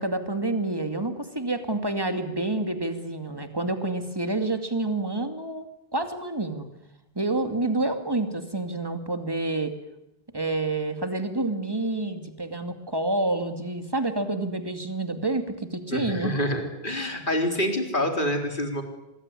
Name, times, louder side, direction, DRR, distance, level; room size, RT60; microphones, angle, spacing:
voice 1, 0.0-5.7 5.9-6.7 7.1-9.7 10.3-16.4, right 2 dB, 20° right, 7 dB, 2.5 m, -28 dB
voice 2, 15.9-18.8, left 1 dB, 50° left, 4 dB, 4.2 m, -27 dB
25.5 x 21.0 x 9.9 m, 0.87 s
omnidirectional pair, 1.1 m